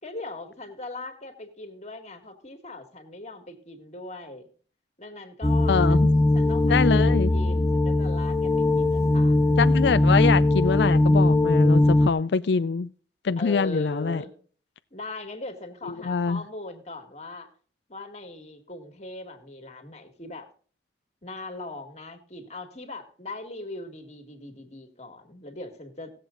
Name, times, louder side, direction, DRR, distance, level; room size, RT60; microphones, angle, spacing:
voice 1, 0.0-4.5 5.0-6.0 6.3-9.6 13.4-14.3 14.9-17.5 17.9-20.5 21.2-26.1, left 2 dB, 40° left, 2.1 m, -40 dB
sound 1, 5.4-12.1, left 2 dB, 15° left, 0.4 m, -20 dB
voice 2, 5.7-6.1 6.6-7.3 9.6-12.9 13.2-14.2 16.0-16.4, left 5 dB, 70° left, 0.4 m, -24 dB
17.5 x 7.6 x 3.9 m
head